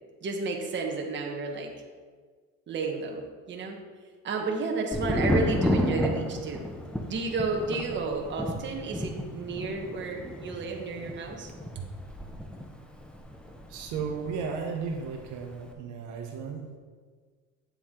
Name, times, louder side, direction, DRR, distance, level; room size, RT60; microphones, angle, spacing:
voice 1, 0.2-1.7 2.7-3.8 4.2-6.7 7.1-11.8, right 3 dB, 40° right, 1 dB, 1.4 m, -32 dB
Thunder, 4.9-14.6 14.8-15.5, equal, 5° left, 0.8 m, -32 dB
voice 2, 13.7-16.8, right 5 dB, 80° right, 2 dB, 1.2 m, -34 dB
9.1 x 7.1 x 3.8 m, 1.5 s
cardioid pair, 130°, 30 cm